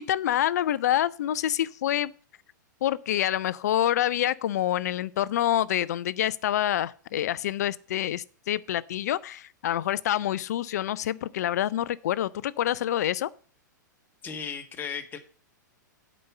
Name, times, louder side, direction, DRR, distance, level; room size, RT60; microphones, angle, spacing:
voice 1, 0.0-2.1 2.8-13.3, left 12 dB, 55° left, 0.5 m, -27 dB
voice 2, 14.2-15.2, left 6 dB, 20° left, 1.5 m, -35 dB
8.8 x 5.2 x 6.7 m
figure-of-eight pair, 105°, 10 cm